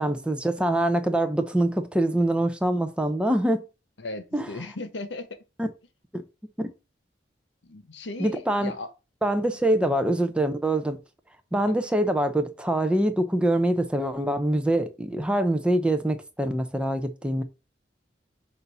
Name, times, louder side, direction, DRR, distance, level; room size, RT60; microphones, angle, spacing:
voice 1, 0.0-3.6 4.3-4.5 5.6-5.7 6.1-6.2 6.6-6.7 8.2-8.7 9.2-11.0 11.5-17.4, right 1 dB, 5° right, 0.7 m, -24 dB
voice 2, 4.0-5.3 7.6-8.9 9.8-10.0 11.6-11.7, left 2 dB, 85° left, 1.1 m, -37 dB
6.5 x 2.8 x 5.5 m
head